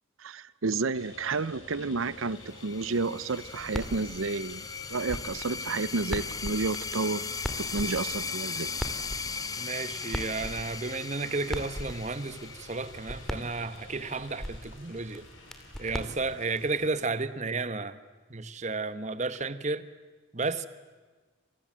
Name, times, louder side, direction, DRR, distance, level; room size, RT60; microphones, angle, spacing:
voice 1, 0.2-4.6 4.9-7.3 7.6-8.7, right 3 dB, 90° right, 18 dB, 0.8 m, -31 dB
sound 1, 0.9-16.9, left 2 dB, 75° left, 7.2 m, -50 dB
sound 2, 2.4-13.7, left 5 dB, 20° left, 0.9 m, -38 dB
sound 3, 3.3-16.7, equal, ahead, 2.4 m, -41 dB
voice 2, 9.6-15.2 15.8-18.0 18.3-19.8 20.3-20.7, right 3 dB, 35° right, 14 dB, 1.2 m, -32 dB
28.5 x 26.5 x 7.6 m, 1.4 s
head